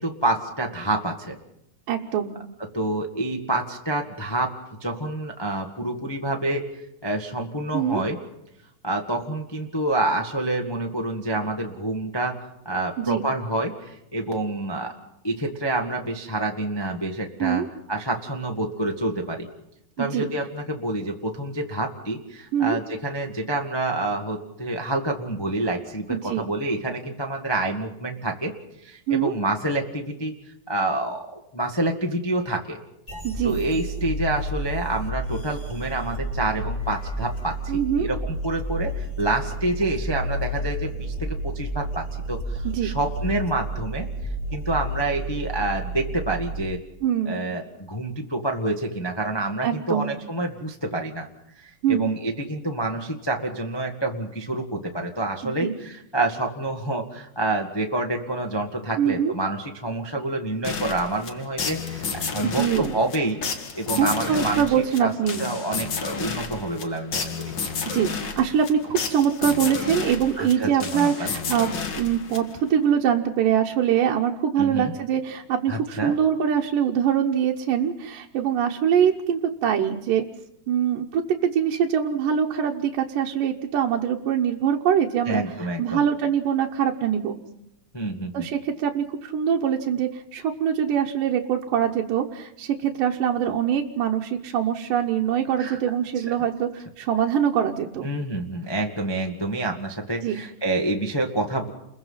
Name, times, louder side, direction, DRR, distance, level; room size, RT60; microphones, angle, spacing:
voice 1, 0.0-1.4 2.7-4.5 4.8-6.7 7.0-8.2 8.8-12.4 12.6-14.9 15.2-17.6 17.9-19.5 20.0-28.5 28.8-30.3 30.7-32.8 33.4-37.5 38.0-44.1 44.5-46.8 47.2-51.3 51.6-64.6 65.0-65.1 65.4-67.5 70.4-71.3 74.6-74.9 75.7-76.2 85.3-86.0 87.9-88.5 95.6-95.8 96.3-96.4 98.0-101.7, right 2 dB, 25° left, 2 dB, 0.5 m, -28 dB
voice 2, 1.9-2.4 7.7-8.0 13.0-13.3 17.4-17.7 20.0-20.3 22.5-22.8 26.1-26.5 29.1-29.3 33.2-33.6 37.7-38.1 42.6-43.0 47.0-47.4 49.6-50.2 51.8-52.1 55.4-55.7 59.0-59.3 62.4-63.0 64.0-65.5 67.8-71.7 72.0-80.3 80.7-87.4 88.3-98.1 100.2-100.4, right 8 dB, 80° right, 0 dB, 2.6 m, -23 dB
sound 1, 33.1-46.6, right 1 dB, 5° left, 6.5 m, -31 dB
sound 2, 60.6-72.8, left 5 dB, 45° left, 1.6 m, -31 dB
29.5 x 22.0 x 5.7 m, 0.83 s
omnidirectional pair, 3.8 m